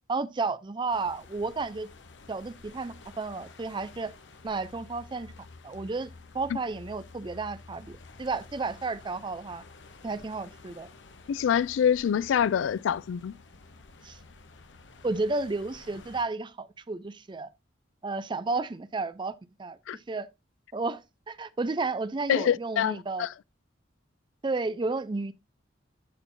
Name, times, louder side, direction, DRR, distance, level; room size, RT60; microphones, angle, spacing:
voice 1, 0.1-1.9 2.3-4.1 4.4-5.3 5.6-6.1 6.3-9.6 10.0-10.9 14.0-14.2 15.0-17.5 18.0-19.3 19.6-20.3 20.7-23.3 24.4-25.3, right 3 dB, 25° right, 0.4 m, -32 dB
sound 1, 0.9-16.2, left 3 dB, 70° left, 1.0 m, -51 dB
voice 2, 11.3-13.3 19.9-20.0 22.3-23.3, left 8 dB, 85° left, 0.3 m, -25 dB
12.5 x 4.4 x 2.6 m
head